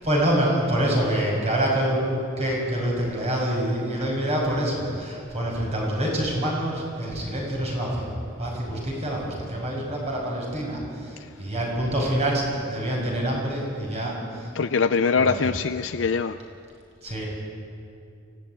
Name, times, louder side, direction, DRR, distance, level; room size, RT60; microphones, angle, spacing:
voice 1, 0.0-14.8 15.2-15.5 17.0-17.3, right 1 dB, 35° right, -2 dB, 6.2 m, -26 dB
voice 2, 14.5-16.4, left 5 dB, 70° left, 9 dB, 0.5 m, -23 dB
24.5 x 16.5 x 9.1 m, 2.5 s
head